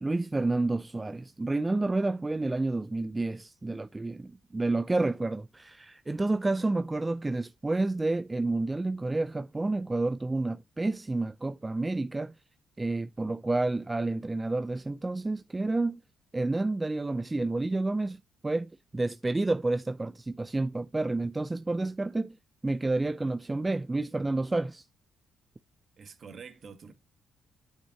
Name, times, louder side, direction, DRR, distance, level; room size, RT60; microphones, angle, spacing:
voice 1, 0.0-12.3 12.8-16.0 16.3-22.4 22.6-24.8, right 2 dB, 20° right, 0.4 m, -30 dB
voice 2, 26.0-26.9, right 6 dB, 50° right, 1.5 m, -46 dB
8.6 x 6.5 x 2.9 m
cardioid pair, 90°, 0 cm